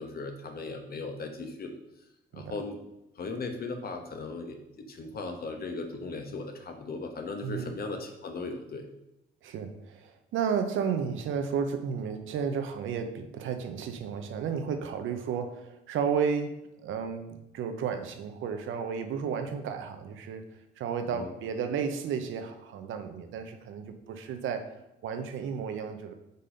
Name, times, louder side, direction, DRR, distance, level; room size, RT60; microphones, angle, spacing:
voice 1, 0.0-1.7 2.3-2.8 3.2-8.8 21.1-21.3, left 3 dB, 50° left, 5 dB, 1.1 m, -37 dB
voice 2, 9.4-20.4 20.8-24.7 25.0-26.1, right 6 dB, 80° right, 7 dB, 0.8 m, -33 dB
5.3 x 4.2 x 5.1 m, 0.92 s
cardioid pair, 90°, 20 cm